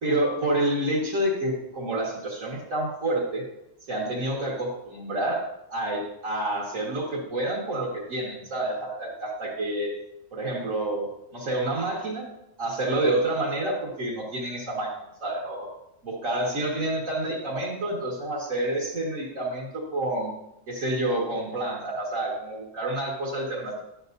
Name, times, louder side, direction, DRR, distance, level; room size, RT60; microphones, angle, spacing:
voice 1, 0.0-3.4 3.9-5.4 5.7-9.9 10.3-12.3 12.6-14.9 15.2-15.7 16.0-20.3 20.7-23.8, right 1 dB, 85° right, -4 dB, 2.3 m, -28 dB
11.5 x 9.9 x 2.7 m, 0.85 s
omnidirectional pair, 1.3 m